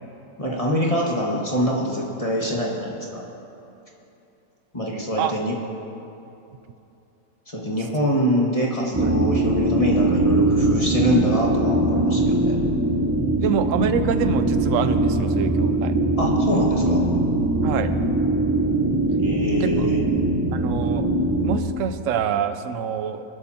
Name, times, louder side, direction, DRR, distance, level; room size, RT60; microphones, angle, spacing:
voice 1, 0.4-3.2 4.7-5.5 7.5-12.5 16.2-17.0 19.2-20.0, equal, 25° left, -3 dB, 1.6 m, -24 dB
sound 1, 8.9-21.6, right 1 dB, 15° right, 0.5 m, -21 dB
voice 2, 13.4-15.9 17.6-17.9 19.6-19.9 20.5-21.1 21.4-23.2, right 7 dB, 65° right, 9 dB, 1.0 m, -26 dB
22.0 x 12.0 x 2.9 m, 2.8 s
omnidirectional pair, 1.6 m